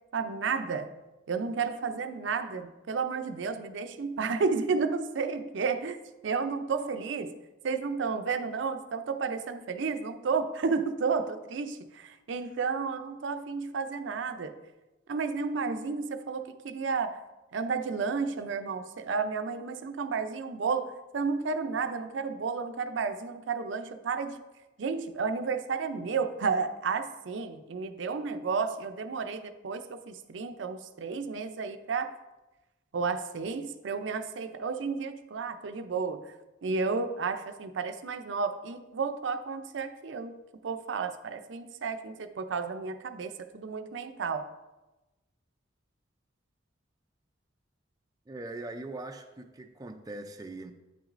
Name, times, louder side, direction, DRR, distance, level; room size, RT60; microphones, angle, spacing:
voice 1, 0.1-0.9 1.3-7.4 7.6-14.6 15.1-17.2 17.5-24.4 24.8-32.2 32.9-36.3 36.6-44.5, right 5 dB, 80° right, 8 dB, 0.5 m, -32 dB
voice 2, 48.3-50.7, right 2 dB, 20° right, 5 dB, 0.3 m, -41 dB
8.8 x 6.1 x 2.5 m, 1.1 s
head